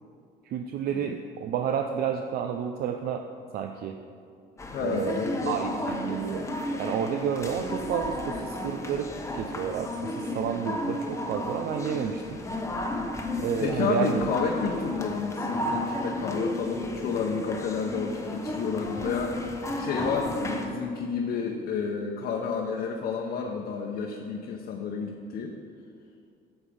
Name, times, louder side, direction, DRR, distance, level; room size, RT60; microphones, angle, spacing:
voice 1, 0.4-3.3 3.5-4.0 4.8-5.2 5.5-12.4 13.4-14.3, right 8 dB, 65° right, 5 dB, 0.5 m, -30 dB
sound 1, 4.6-20.7, left 1 dB, 15° left, 1.0 m, -33 dB
voice 2, 4.7-5.7 10.6-10.7 12.7-13.0 13.6-25.5, left 5 dB, 65° left, 0 dB, 0.9 m, -31 dB
9.0 x 7.3 x 5.0 m, 2.3 s
cardioid pair, 110°, 17 cm